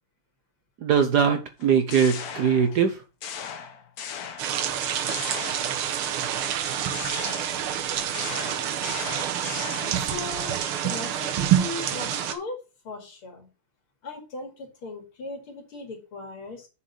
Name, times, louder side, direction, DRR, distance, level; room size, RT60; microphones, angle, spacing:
voice 1, 0.8-3.0, right 7 dB, 65° right, 1.1 m, -21 dB
sound 1, 1.6-2.9 3.2-4.8 5.1-6.1 6.9-10.1, left 7 dB, 55° left, 1.2 m, -38 dB
sound 2, 4.4-12.3, right 9 dB, 80° right, 1.8 m, -27 dB
voice 2, 9.8-10.5 10.8-11.3 11.5-12.6 12.8-13.5 14.0-16.7, left 3 dB, 75° left, 3.2 m, -38 dB
7.0 x 4.5 x 6.6 m
omnidirectional pair, 2.4 m